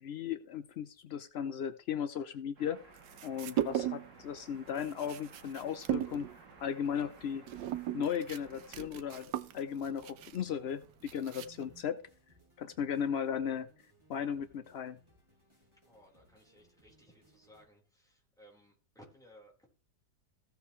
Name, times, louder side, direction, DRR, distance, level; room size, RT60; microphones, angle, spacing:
voice 1, 0.0-2.8 3.2-6.3 6.6-7.4 7.9-12.0 12.6-13.7 14.1-15.0, left 8 dB, 75° left, 12 dB, 0.6 m, -36 dB
sound 1, 2.6-8.9, right 3 dB, 50° right, 2.1 m, -58 dB
sound 2, 3.0-4.2 4.5-11.8, right 11 dB, 90° right, 1.4 m, -38 dB
sound 3, 3.9-17.6, right 1 dB, 15° right, 5.8 m, -67 dB
voice 2, 15.5-19.7, equal, ahead, -2 dB, 4.2 m, -60 dB
15.0 x 8.0 x 3.2 m, 0.39 s
omnidirectional pair, 1.8 m